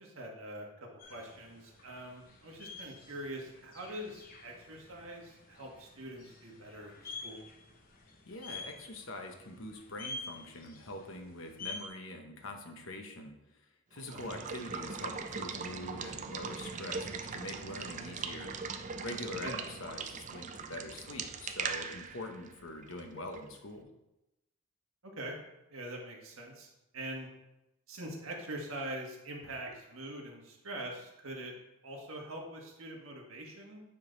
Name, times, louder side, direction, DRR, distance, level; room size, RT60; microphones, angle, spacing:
voice 1, 0.0-7.4 14.1-14.5 19.4-19.6 25.0-25.4 25.7-27.3 27.9-31.5 31.8-33.8, right 1 dB, 75° right, 0 dB, 1.5 m, -44 dB
sound 1, 1.0-11.9, left 3 dB, 40° left, 0.9 m, -48 dB
voice 2, 8.3-13.6 13.9-18.5 19.0-23.9, left 1 dB, 70° left, 4 dB, 1.0 m, -44 dB
Water / Water tap faucet / Liquid, 14.0-23.6, right 5 dB, 35° right, 0.4 m, -40 dB
8.9 x 3.8 x 4.0 m, 0.93 s
head